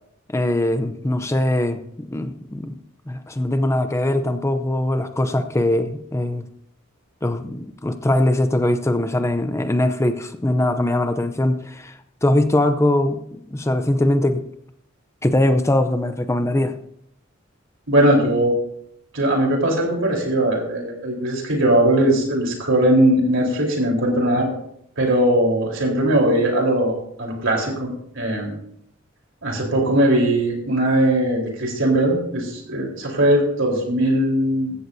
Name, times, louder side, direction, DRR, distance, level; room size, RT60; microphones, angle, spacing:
voice 1, 0.3-2.7 3.1-6.5 7.2-14.4 15.2-16.8, left 1 dB, 15° left, 9 dB, 0.6 m, -21 dB
voice 2, 17.9-18.5 19.1-24.5 25.0-27.9 28.2-28.5 29.4-34.7, right 1 dB, 65° right, 0 dB, 4.1 m, -19 dB
16.0 x 14.0 x 2.7 m, 0.71 s
head